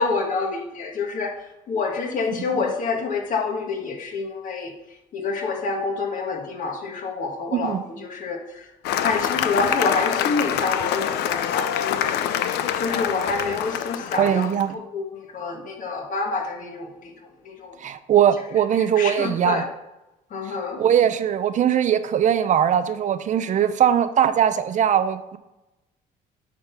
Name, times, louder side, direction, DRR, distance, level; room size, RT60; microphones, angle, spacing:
voice 1, 0.0-1.3 1.7-4.7 5.1-8.6 9.0-12.2 12.5-14.5 14.7-17.1 17.4-17.8 19.0-19.7 20.3-20.8, left 4 dB, 50° left, 2 dB, 1.6 m, -27 dB
Cheering / Applause, 8.8-14.6, left 10 dB, 85° left, 0.6 m, -25 dB
voice 2, 14.2-14.8 17.8-19.6 20.4-25.4, right 9 dB, 45° right, 12 dB, 0.5 m, -20 dB
8.6 x 3.7 x 5.9 m, 0.96 s
cardioid pair, 110°, 17 cm